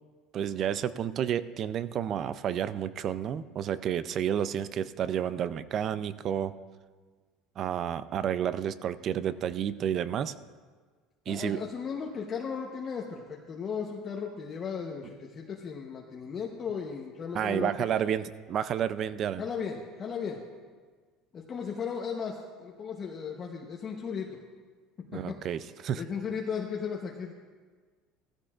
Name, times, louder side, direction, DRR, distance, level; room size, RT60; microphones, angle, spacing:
voice 1, 0.3-6.5 7.6-10.3 11.3-11.6 17.3-19.4 25.1-26.0, right 9 dB, 40° right, 15 dB, 0.4 m, -30 dB
voice 2, 11.3-18.0 19.4-20.4 21.3-24.4 25.1-25.4 26.0-27.3, left 6 dB, 30° left, -1 dB, 0.9 m, -36 dB
16.5 x 14.5 x 2.5 m, 1.5 s
cardioid pair, 150°, 0 cm